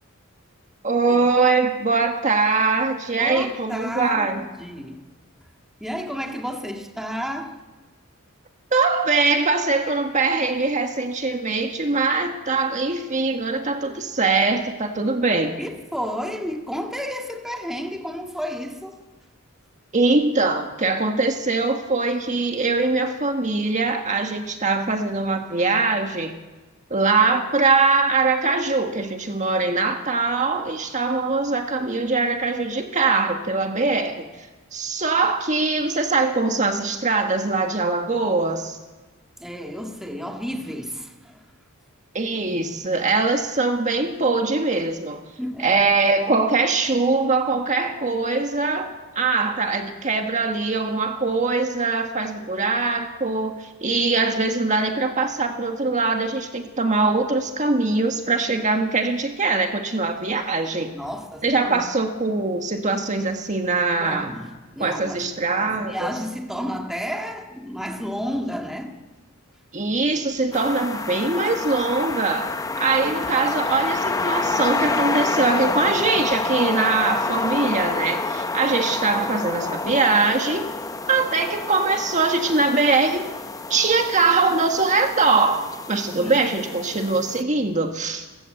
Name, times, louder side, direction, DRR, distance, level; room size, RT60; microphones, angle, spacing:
voice 1, 0.8-4.4 8.7-15.6 19.9-26.3 26.9-34.3 34.7-38.8 42.1-45.2 45.6-60.9 61.4-64.3 64.8-66.1 69.7-80.7 81.1-83.3 83.7-88.3, right 3 dB, 35° right, 1.6 m, -22 dB
voice 2, 3.1-5.0 5.8-7.6 15.6-19.0 39.4-41.4 45.4-45.8 60.9-61.9 64.0-65.3 65.6-69.0 86.2-86.5, equal, ahead, 1.9 m, -31 dB
sound 1, 70.5-87.4, left 3 dB, 15° left, 0.8 m, -28 dB
29.5 x 15.0 x 7.8 m
head